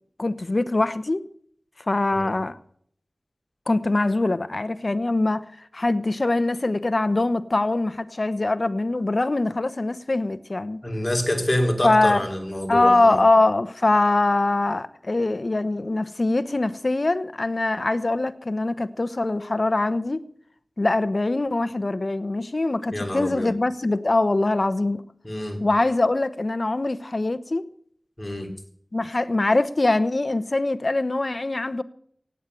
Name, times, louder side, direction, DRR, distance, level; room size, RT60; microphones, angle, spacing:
voice 1, 0.2-1.2 1.9-2.6 3.7-5.4 5.7-10.8 11.8-12.3 12.7-20.2 20.8-25.0 25.6-27.7 28.9-31.8, left 2 dB, 55° left, 0.9 m, -23 dB
voice 2, 10.8-13.2 22.9-23.5 25.2-25.6 28.2-28.5, left 1 dB, 20° left, 3.6 m, -26 dB
17.0 x 9.1 x 8.3 m
wide cardioid pair, 60°, 0 cm